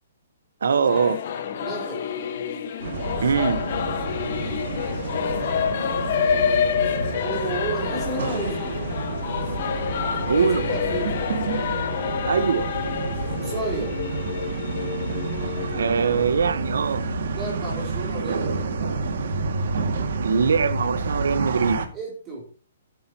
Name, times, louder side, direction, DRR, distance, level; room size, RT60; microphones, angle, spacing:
voice 1, 0.6-1.2 3.2-3.6 10.3-10.6 12.2-12.7 15.8-17.0 20.2-21.8, right 6 dB, 85° right, 1.2 m, -22 dB
Singing / Musical instrument, 0.8-17.2, left 7 dB, 45° left, 1.4 m, -28 dB
voice 2, 1.6-2.0 7.1-8.8 10.3-11.2 13.4-14.0 17.3-18.7 21.9-22.4, right 2 dB, 15° right, 3.1 m, -32 dB
sound 1, 2.8-21.9, right 3 dB, 60° right, 2.1 m, -29 dB
16.0 x 9.1 x 3.0 m
hypercardioid pair, 170°, 0 cm